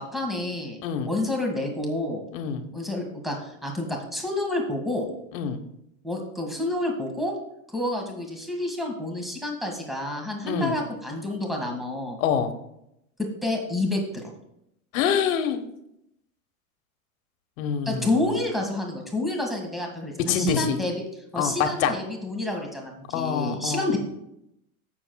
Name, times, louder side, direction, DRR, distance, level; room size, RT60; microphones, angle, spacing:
voice 1, 0.0-0.8 1.1-2.3 2.7-5.1 6.0-7.3 7.7-12.2 13.4-14.3 17.9-20.9 21.3-24.0, left 1 dB, ahead, 1 dB, 1.8 m, -29 dB
voice 2, 2.3-2.7 5.3-5.6 10.4-10.7 12.2-12.5 14.9-15.6 17.6-18.1 20.2-20.8 21.4-21.9 23.1-23.9, left 7 dB, 60° left, 6 dB, 1.3 m, -25 dB
15.0 x 7.0 x 2.3 m, 0.80 s
hypercardioid pair, 125°, 45 cm